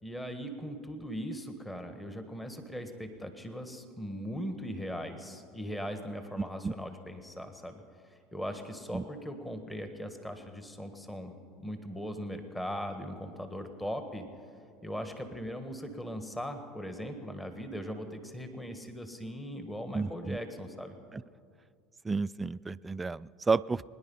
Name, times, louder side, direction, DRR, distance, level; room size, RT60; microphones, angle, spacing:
voice 1, 0.0-14.3 14.8-21.0, equal, 10° left, 7 dB, 1.6 m, -39 dB
voice 2, 19.9-20.4 21.1-21.2 22.0-23.9, right 4 dB, 20° right, 18 dB, 0.3 m, -31 dB
23.5 x 10.5 x 5.6 m, 2.2 s
hypercardioid pair, 75°, 0 cm